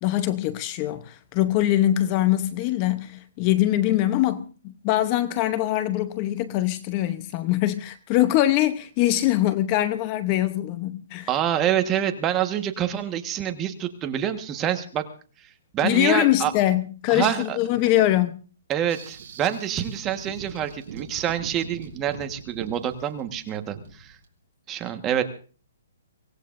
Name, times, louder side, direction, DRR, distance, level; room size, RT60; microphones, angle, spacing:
voice 1, 0.0-11.3 15.8-18.4, left 14 dB, 30° left, 0.8 m, -23 dB
voice 2, 11.3-15.1 15.4-15.5 15.7-16.5 17.1-17.6 18.7-24.2 24.7-25.2, right 10 dB, 20° right, 1.4 m, -26 dB
sound 1, 18.9-24.3, right 6 dB, 45° right, 3.7 m, -41 dB
24.5 x 18.0 x 2.6 m
hypercardioid pair, 160°, 0 cm